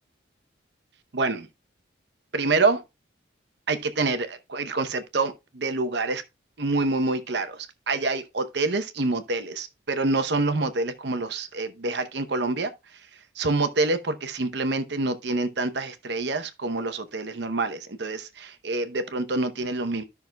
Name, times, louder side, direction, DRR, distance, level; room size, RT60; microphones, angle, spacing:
voice 1, 1.1-1.5 2.3-2.8 3.7-6.2 6.6-12.7 13.4-20.0, right 3 dB, 60° right, 0.8 m, -27 dB
13.0 x 6.0 x 2.3 m
head